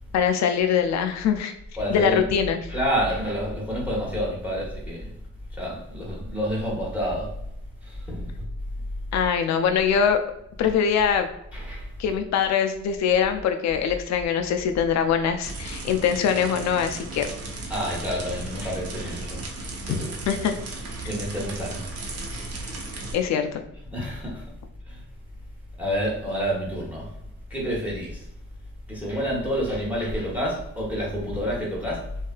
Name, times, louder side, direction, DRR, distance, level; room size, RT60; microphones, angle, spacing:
voice 1, 0.1-1.5 1.9-2.6 9.1-10.2 10.6-11.3 12.0-17.3 19.9-20.0 20.3-20.5 23.1-23.6, left 7 dB, 65° left, 7 dB, 0.4 m, -23 dB
voice 2, 1.8-2.3 2.7-5.1 5.6-7.3 7.8-8.5 11.5-11.9 17.7-19.4 19.8-20.1 21.0-21.9 23.9-24.4 24.9-25.0 25.8-27.1 27.5-28.2 28.9-32.0, equal, 5° right, -4 dB, 0.9 m, -28 dB
sound 1, 15.4-23.1, right 3 dB, 50° right, 0.7 m, -36 dB
2.7 x 2.4 x 2.3 m, 0.80 s
cardioid pair, 90°, 30 cm